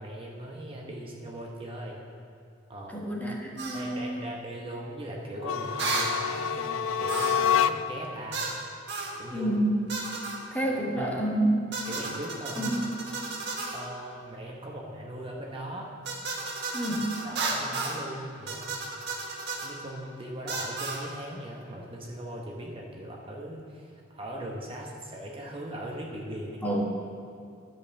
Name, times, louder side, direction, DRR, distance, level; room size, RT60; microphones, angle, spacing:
voice 1, 0.0-2.0 2.7-3.0 3.7-8.5 9.1-9.5 11.0-11.2 11.9-12.7 13.7-15.9 17.2-18.7 19.6-26.7, right 1 dB, 30° right, -2 dB, 1.1 m, -39 dB
voice 2, 2.9-4.3 9.3-9.8 10.5-11.6 12.5-12.8 16.7-17.2 26.6-26.9, right 1 dB, 10° left, -3 dB, 1.4 m, -28 dB
sound 1, 3.6-3.8 5.8-6.2 7.1-7.5 8.3-8.6 8.9-9.2 9.9-10.4 11.7-13.8 16.1-18.0 18.5-19.7 20.5-21.0, right 3 dB, 60° right, 1.5 m, -33 dB
sound 2, 5.4-8.1, left 8 dB, 90° left, 0.3 m, -27 dB
11.5 x 5.4 x 6.7 m, 2.5 s
head